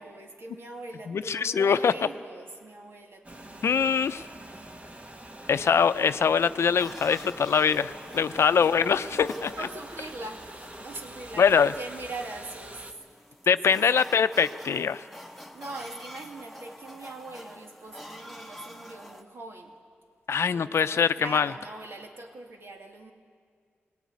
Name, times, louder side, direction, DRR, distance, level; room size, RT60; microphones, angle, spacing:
voice 1, 0.0-5.0 7.1-7.2 8.1-8.6 9.0-9.3 9.6-13.0 13.7-13.8 15.3-19.8 20.5-23.1, right 2 dB, 65° right, 2 dB, 2.4 m, -42 dB
voice 2, 1.1-1.9 3.6-4.3 5.5-9.5 11.4-11.7 13.5-15.1 20.3-21.5, left 6 dB, 80° left, 12 dB, 0.6 m, -23 dB
sound 1, 3.2-12.9, right 1 dB, 30° right, 1.4 m, -45 dB
sound 2, 6.5-19.2, left 1 dB, 5° right, 1.4 m, -47 dB
20.0 x 19.0 x 9.5 m, 2.1 s
wide cardioid pair, 85°, 4 cm